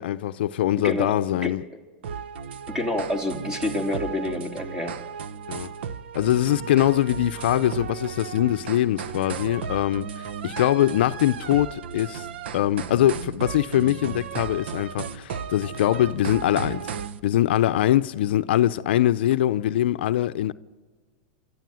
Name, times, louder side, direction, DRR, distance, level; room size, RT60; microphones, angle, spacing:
voice 1, 0.0-1.6 5.5-5.7 6.1-12.3 12.5-16.9 17.2-20.5, left 13 dB, 75° left, 0.6 m, -23 dB
voice 2, 0.8-1.1 1.4-1.6 2.7-5.0, left 2 dB, 10° right, 2.8 m, -28 dB
sound 1, 2.0-17.2, right 7 dB, 80° right, 0.9 m, -35 dB
28.5 x 13.5 x 7.7 m
hypercardioid pair, 125°, 6 cm